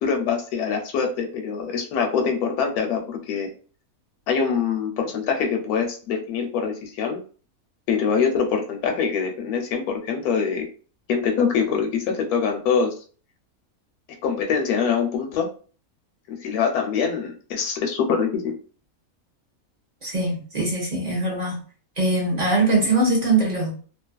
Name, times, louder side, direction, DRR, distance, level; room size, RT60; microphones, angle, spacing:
voice 1, 0.0-3.5 4.3-7.2 7.9-10.7 11.1-12.9 14.2-15.5 16.3-18.4, left 6 dB, 90° left, 1.1 m, -24 dB
voice 2, 20.0-21.6 22.0-23.7, right 2 dB, 40° right, 0.6 m, -22 dB
2.6 x 2.4 x 2.2 m
omnidirectional pair, 1.6 m